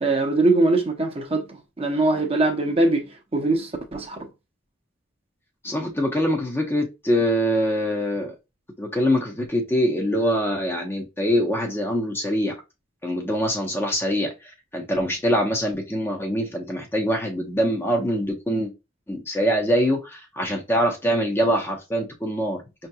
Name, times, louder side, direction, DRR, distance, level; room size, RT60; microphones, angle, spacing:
voice 1, 0.0-4.3, right 2 dB, 30° right, 0.7 m, -22 dB
voice 2, 5.6-8.3 8.8-12.5 13.0-18.7 19.1-22.6, equal, 10° left, 0.6 m, -24 dB
5.6 x 2.8 x 2.2 m
head